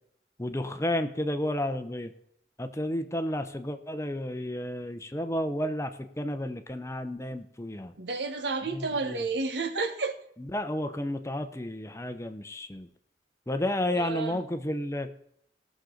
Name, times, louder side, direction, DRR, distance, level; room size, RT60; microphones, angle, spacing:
voice 1, 0.4-2.1 2.6-7.9 8.7-9.2 10.5-12.9 13.5-15.1, left 1 dB, 15° left, 8 dB, 0.7 m, -32 dB
voice 2, 8.0-10.2 13.9-14.4, right 3 dB, 75° right, 7 dB, 1.2 m, -31 dB
19.0 x 6.5 x 3.9 m, 0.71 s
head